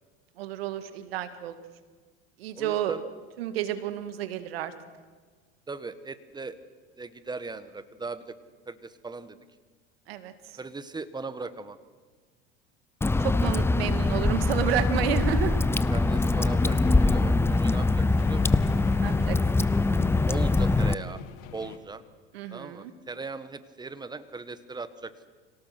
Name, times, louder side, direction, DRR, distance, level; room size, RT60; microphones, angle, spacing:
voice 1, 0.4-1.6 2.4-2.9 3.4-4.7 10.1-10.6 13.2-15.6 19.0-19.4 22.3-22.9, right 10 dB, 80° right, 11 dB, 1.9 m, -31 dB
voice 2, 2.5-3.0 5.7-6.6 7.0-8.4 8.7-9.4 10.6-11.8 15.9-18.5 20.3-21.2 21.5-22.0 22.5-25.1, right 3 dB, 15° right, 13 dB, 1.4 m, -38 dB
Water / Drip, 13.0-20.9, left 3 dB, 10° left, 0.6 m, -23 dB
sound 1, 13.9-21.8, left 10 dB, 60° left, 2.2 m, -46 dB
25.5 x 17.5 x 6.1 m, 1.5 s
hypercardioid pair, 90°, 30 cm